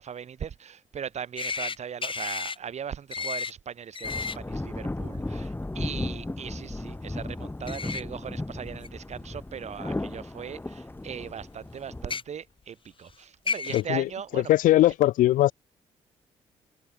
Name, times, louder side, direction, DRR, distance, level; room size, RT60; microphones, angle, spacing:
voice 1, 0.0-14.5, right 8 dB, 50° right, 1.7 m, -39 dB
sound 1, 1.4-1.8 2.0-2.6 3.1-3.5 3.9-4.4 7.7-8.0 8.8-8.9 10.2-10.3 12.0-12.2 13.1-13.2 13.5-13.8, left 5 dB, 35° left, 2.0 m, -31 dB
sound 2, 4.0-12.2, left 2 dB, 15° left, 4.8 m, -35 dB
voice 2, 13.7-14.0 14.5-15.5, left 15 dB, 65° left, 0.5 m, -20 dB
hypercardioid pair, 50°, 14 cm